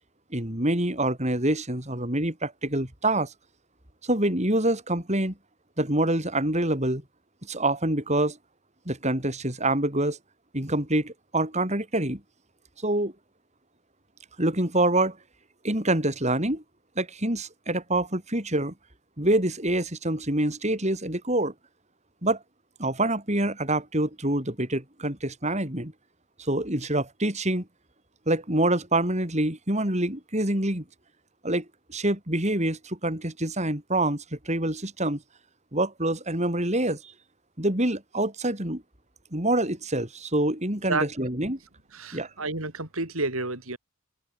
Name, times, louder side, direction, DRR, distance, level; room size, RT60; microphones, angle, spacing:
voice 1, 0.3-3.3 4.0-5.3 5.8-7.0 7.5-8.4 8.9-10.2 10.5-12.2 12.8-13.1 14.4-15.2 15.6-16.6 17.0-18.7 19.2-21.5 22.2-22.4 22.8-25.9 26.5-27.6 28.3-30.8 31.4-35.2 35.7-37.0 37.6-38.8 39.3-41.6 42.1-42.3, right 1 dB, 30° right, 5.0 m, -26 dB
voice 2, 41.9-43.8, right 3 dB, 70° right, 4.6 m, -30 dB
open air
head